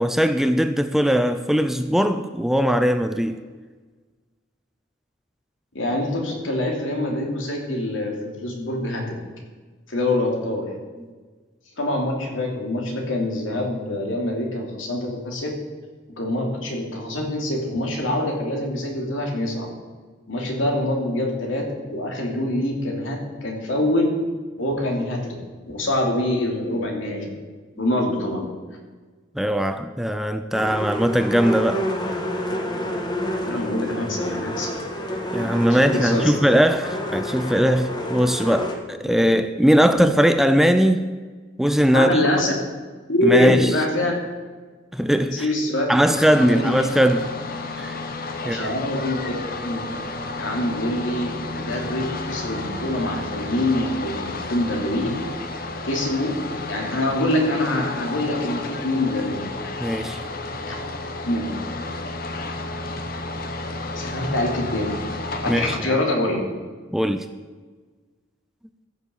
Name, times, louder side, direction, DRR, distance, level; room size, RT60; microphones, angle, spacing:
voice 1, 0.0-3.4 29.4-31.9 35.3-41.1 41.6-42.2 43.2-43.7 44.9-45.5 45.9-47.3 47.8-48.0 48.5-48.7 59.8-60.2 65.5-66.0 66.9-67.3, equal, ahead, 0.4 m, -20 dB
voice 2, 5.7-9.2 9.9-10.7 11.8-15.5 16.1-19.7 20.3-24.1 24.6-25.4 25.7-27.3 27.8-28.4 33.4-34.7 35.7-36.3 39.7-39.8 41.9-42.5 43.1-44.1 45.3-45.9 46.5-46.7 48.4-49.3 49.6-49.9 50.4-55.2 55.8-56.4 56.7-59.5 60.6-60.8 61.3-61.6 63.9-65.0 65.4-66.4, left 1 dB, 80° left, 2.9 m, -25 dB
sound 1, 30.5-38.7, equal, 20° left, 1.4 m, -29 dB
sound 2, 46.1-65.8, left 2 dB, 45° left, 1.0 m, -32 dB
14.5 x 7.1 x 7.2 m
head